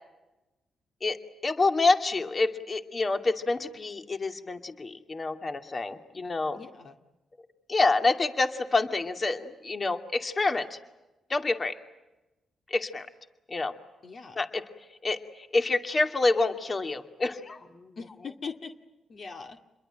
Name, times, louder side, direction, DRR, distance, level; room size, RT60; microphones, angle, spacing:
voice 1, 1.0-6.6 7.7-10.8 11.3-11.7 12.7-13.1 13.5-13.7 14.4-14.6 15.0-18.0, left 3 dB, 40° left, 7 dB, 2.4 m, -27 dB
voice 2, 6.5-7.0 14.0-14.4 18.0-18.7 19.1-19.6, left 5 dB, 55° left, 5 dB, 2.2 m, -41 dB
28.0 x 22.0 x 9.0 m, 1.0 s
supercardioid pair, 55°, 0 cm